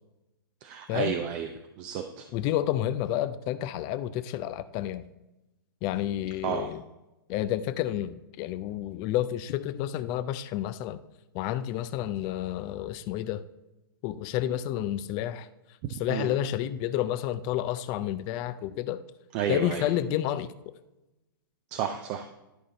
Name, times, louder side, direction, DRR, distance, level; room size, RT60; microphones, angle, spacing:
voice 1, 0.6-1.5 1.8-2.3 6.4-6.7 16.1-16.3 19.3-19.9 21.7-22.3, right 9 dB, 40° right, 6 dB, 0.6 m, -31 dB
voice 2, 2.3-5.1 5.8-6.8 7.3-11.0 11.3-13.4 14.0-15.5 16.0-19.0 19.5-20.5, left 12 dB, 35° left, 13 dB, 0.5 m, -30 dB
11.0 x 5.0 x 4.0 m, 0.99 s
hypercardioid pair, 120°, 12 cm